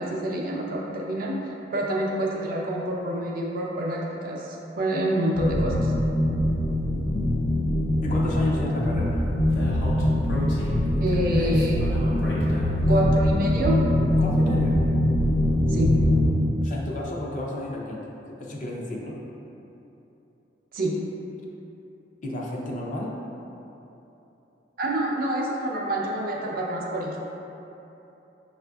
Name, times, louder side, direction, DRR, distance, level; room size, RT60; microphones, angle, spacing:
voice 1, 0.0-1.3 1.7-5.9 11.0-11.8 12.9-13.8 15.7-15.9 20.7-20.9 24.8-27.2, right 1 dB, 50° right, -3 dB, 0.5 m, -27 dB
sound 1, 5.3-16.3, left 1 dB, 60° left, 1.2 m, -23 dB
voice 2, 8.0-9.2 14.2-14.8 16.6-18.1 18.4-19.2 22.2-23.1, left 1 dB, 45° left, -3 dB, 0.5 m, -32 dB
Speech, 8.8-13.7, equal, 80° left, 0.8 m, -32 dB
5.7 x 2.5 x 2.3 m, 3.0 s
head